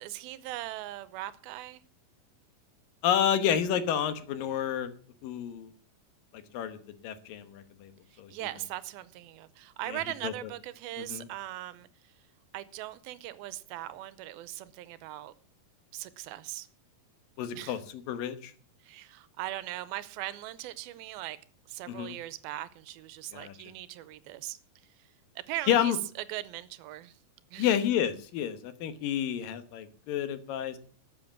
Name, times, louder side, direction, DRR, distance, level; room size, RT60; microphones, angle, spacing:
voice 1, 0.0-1.8 8.1-12.1 12.5-15.3 15.9-16.7 17.6-17.8 18.8-21.4 21.7-24.6 25.0-25.1 25.4-26.0 26.3-27.2 27.5-27.7, right 15 dB, 90° right, 2.6 m, -40 dB
voice 2, 3.0-4.9 5.2-5.7 6.3-7.9 8.2-8.3 9.9-10.3 11.0-11.3 17.4-18.5 21.9-22.2 23.3-23.5 25.7-26.0 27.6-30.8, left 9 dB, 75° left, 2.8 m, -30 dB
13.0 x 7.9 x 7.2 m
omnidirectional pair, 4.2 m